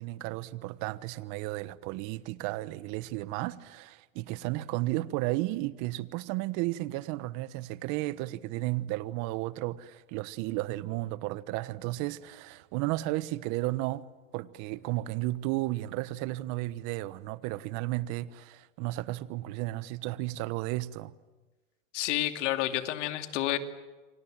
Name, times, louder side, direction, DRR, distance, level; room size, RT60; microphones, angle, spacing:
voice 1, 0.0-14.0 14.3-21.1, right 18 dB, 50° right, 1.3 m, -33 dB
voice 2, 21.9-23.6, left 14 dB, 65° left, 2.7 m, -29 dB
28.0 x 25.0 x 7.6 m
hypercardioid pair, 115°, 37 cm